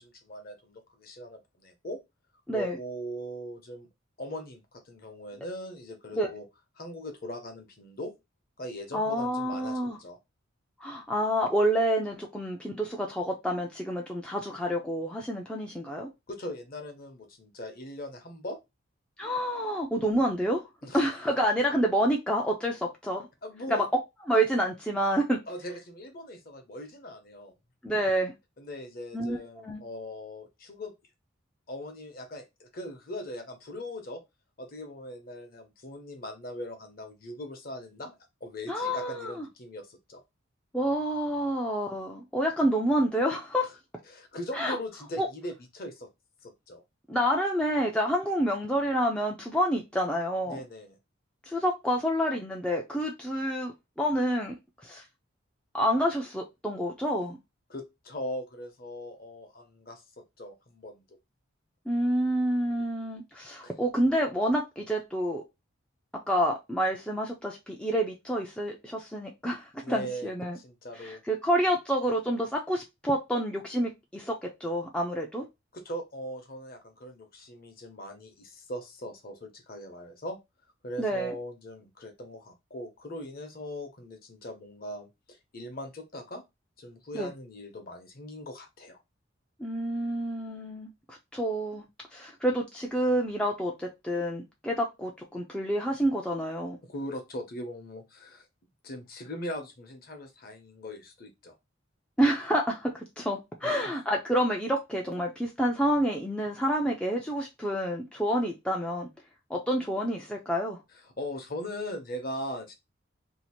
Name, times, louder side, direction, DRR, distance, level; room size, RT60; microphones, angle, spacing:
voice 1, 0.0-2.0 2.5-3.9 4.2-6.5 6.8-8.1 8.6-10.2 16.3-18.6 20.8-21.1 23.4-23.8 25.5-27.5 28.6-30.9 31.7-34.2 34.6-38.1 38.4-40.2 43.6-43.7 44.1-46.1 46.4-46.8 50.5-51.0 57.7-61.0 63.6-63.7 69.8-71.2 75.7-80.4 80.8-86.4 86.8-89.0 96.8-98.5 98.8-101.5 103.6-103.7 110.9-112.7, equal, 45° left, 0.8 m, -40 dB
voice 2, 8.9-10.0 10.8-16.1 19.2-20.6 20.9-23.3 23.7-23.9 24.3-25.4 27.8-28.3 29.1-29.4 29.7-29.8 38.7-39.4 40.7-43.7 44.5-44.8 45.2-45.3 47.1-50.6 51.5-54.5 54.8-55.0 55.7-57.4 61.9-65.4 66.3-70.6 71.0-75.5 81.0-81.3 87.1-87.3 89.6-91.8 92.1-96.8 102.2-109.1 109.5-110.8, equal, 5° left, 0.4 m, -28 dB
2.8 x 2.4 x 4.2 m
head